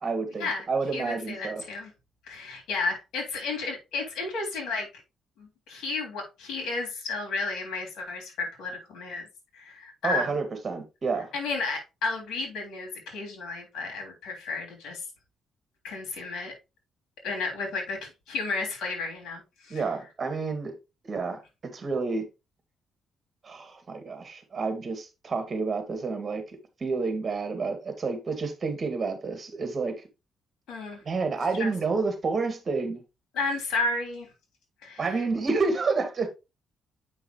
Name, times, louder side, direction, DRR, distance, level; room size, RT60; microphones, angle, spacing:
voice 1, 0.0-1.6 10.0-11.3 19.7-20.7 21.1-22.3 23.4-26.4 26.8-30.0 31.1-33.0 35.0-36.3, right 4 dB, 35° right, 1.8 m, -29 dB
voice 2, 0.9-1.9 2.2-4.9 5.4-9.2 9.5-10.3 11.3-15.0 15.8-16.5 17.2-18.0 18.3-19.8 30.7-31.0 31.6-31.7 33.3-34.3 34.8-35.2, left 3 dB, 90° left, 3.2 m, -32 dB
7.9 x 5.6 x 3.0 m
cardioid pair, 120°, 0 cm